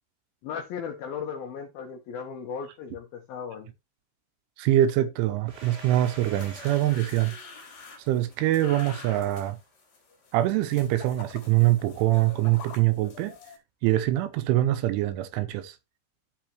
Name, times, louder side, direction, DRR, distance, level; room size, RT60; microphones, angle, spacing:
voice 1, 0.4-3.7, left 7 dB, 85° left, 2.1 m, -36 dB
voice 2, 4.6-7.4 8.1-9.6 10.3-13.4 13.8-15.8, right 14 dB, 80° right, 3.0 m, -24 dB
Domestic sounds home sounds, 5.5-9.9, right 1 dB, 50° right, 1.1 m, -49 dB
sound 1, 5.9-13.6, left 5 dB, 55° left, 4.8 m, -46 dB
14.5 x 5.0 x 2.9 m
omnidirectional pair, 5.9 m